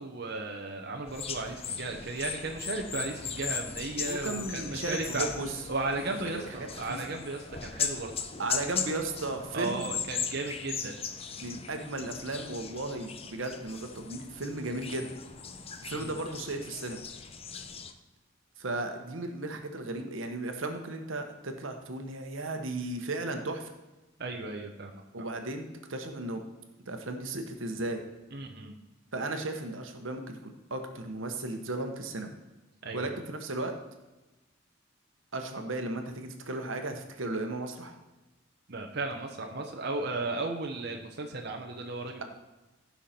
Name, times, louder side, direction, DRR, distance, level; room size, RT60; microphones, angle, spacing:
voice 1, 0.0-5.3 5.7-8.2 9.5-11.0 15.9-16.1 24.2-25.0 28.3-28.8 32.8-33.1 38.7-42.2, right 3 dB, 55° right, 2 dB, 1.0 m, -35 dB
sound 1, 1.1-17.9, left 7 dB, 30° left, 0.6 m, -38 dB
voice 2, 4.0-5.6 6.2-7.0 8.4-9.9 11.4-15.1 15.8-17.0 18.6-23.7 25.1-26.4 26.9-28.0 29.1-32.3 32.9-33.7 35.3-37.9, right 2 dB, 80° right, 5 dB, 1.2 m, -35 dB
15.5 x 5.8 x 4.4 m, 1.1 s
head